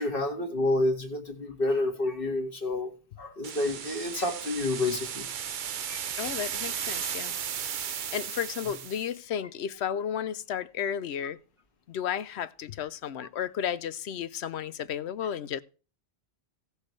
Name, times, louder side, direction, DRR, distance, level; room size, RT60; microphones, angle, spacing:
voice 1, 0.0-2.9 3.2-5.3 5.9-6.3, left 2 dB, 55° left, 2.0 m, -29 dB
sound 1, 3.4-9.1, right 8 dB, 55° right, 0.7 m, -35 dB
voice 2, 6.2-7.4 7.9-11.4 11.9-15.6, left 9 dB, 85° left, 0.9 m, -33 dB
17.5 x 6.5 x 3.2 m
omnidirectional pair, 1.1 m